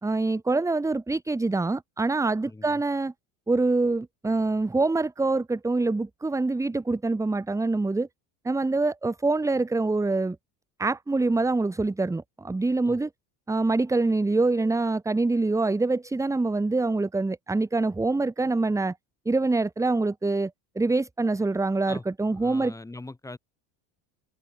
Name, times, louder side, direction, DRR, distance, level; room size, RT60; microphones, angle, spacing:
voice 1, 0.0-3.1 3.5-8.1 8.4-10.4 10.8-13.1 13.5-18.9 19.2-20.5 20.7-22.7, right 3 dB, 10° right, 1.6 m, -25 dB
voice 2, 2.4-2.8 12.8-13.0 21.9-22.0 22.3-23.4, left 2 dB, 10° left, 3.7 m, -41 dB
cardioid pair, 145°, 38 cm